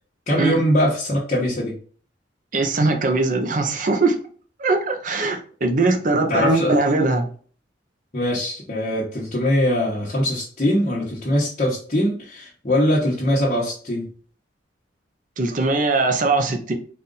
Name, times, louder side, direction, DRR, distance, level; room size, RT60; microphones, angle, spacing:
voice 1, 0.3-1.7 6.3-6.7 8.1-14.1, equal, 35° left, -8 dB, 1.1 m, -22 dB
voice 2, 2.5-4.2 4.6-7.3 15.4-16.7, right 3 dB, 45° right, 5 dB, 0.6 m, -21 dB
4.1 x 2.5 x 3.8 m, 0.43 s
head